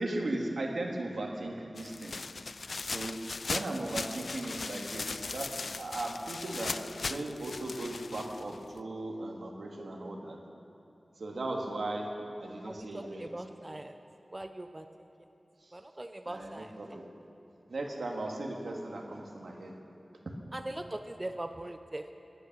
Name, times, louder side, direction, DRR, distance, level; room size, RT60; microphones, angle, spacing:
voice 1, 0.0-2.1 2.8-3.2 3.5-6.7 7.0-10.4 11.2-12.1 12.4-13.3 15.6-15.7 16.3-17.1 17.7-19.7, right 2 dB, 80° right, 0 dB, 1.9 m, -37 dB
sound 1, 1.8-8.8, left 3 dB, 70° left, 0.3 m, -38 dB
voice 2, 12.6-13.9 14.3-14.9 15.7-17.0 20.5-22.1, right 1 dB, 25° right, 7 dB, 0.6 m, -41 dB
19.5 x 10.0 x 6.2 m, 2.8 s
wide cardioid pair, 85°, 0 cm